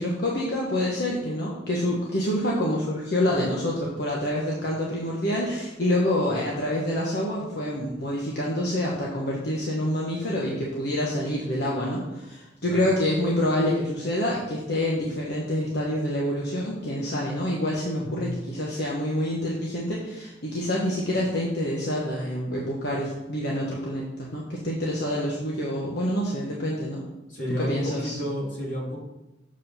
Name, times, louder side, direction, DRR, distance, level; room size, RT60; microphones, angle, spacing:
voice 1, 0.0-24.1 24.3-27.0 27.6-28.2, left 1 dB, 60° left, -4 dB, 1.3 m, -27 dB
voice 2, 18.0-18.4 27.3-29.0, equal, 85° left, -5 dB, 3.1 m, -31 dB
7.3 x 5.2 x 5.7 m, 0.97 s
head